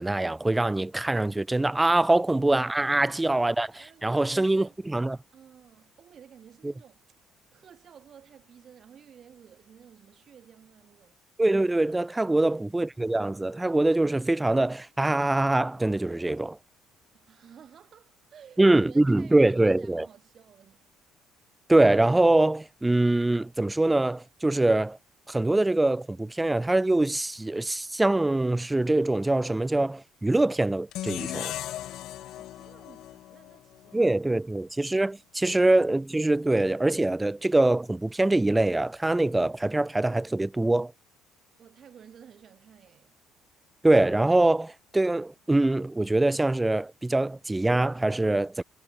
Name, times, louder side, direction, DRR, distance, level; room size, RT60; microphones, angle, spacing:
voice 1, 0.0-5.2 6.6-6.7 11.4-16.6 18.6-20.1 21.7-25.0 25.3-31.5 33.9-40.9 43.8-48.6, right 2 dB, 10° right, 0.4 m, -24 dB
voice 2, 3.8-4.8 5.3-11.1 12.3-12.8 17.1-20.9 32.2-34.1 41.6-43.2, right 8 dB, 50° right, 5.2 m, -53 dB
sound 1, 30.9-34.1, left 13 dB, 70° left, 0.7 m, -37 dB
cardioid pair, 95°, 0 cm